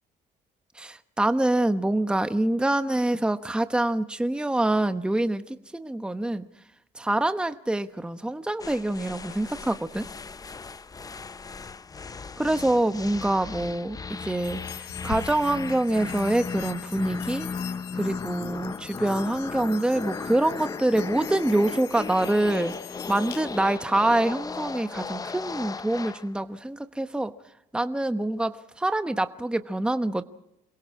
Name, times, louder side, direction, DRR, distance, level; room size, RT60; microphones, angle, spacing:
voice 1, 0.7-6.5 6.9-10.1 12.4-17.5 17.9-27.3 27.7-30.2, right 1 dB, 5° right, 9 dB, 1.0 m, -26 dB
sound 1, 8.6-26.3, left 5 dB, 20° left, 0.7 m, -36 dB
sound 2, 14.3-23.8, left 16 dB, 90° left, 0.8 m, -43 dB
28.5 x 22.0 x 4.8 m, 0.84 s
cardioid pair, 110°, 17 cm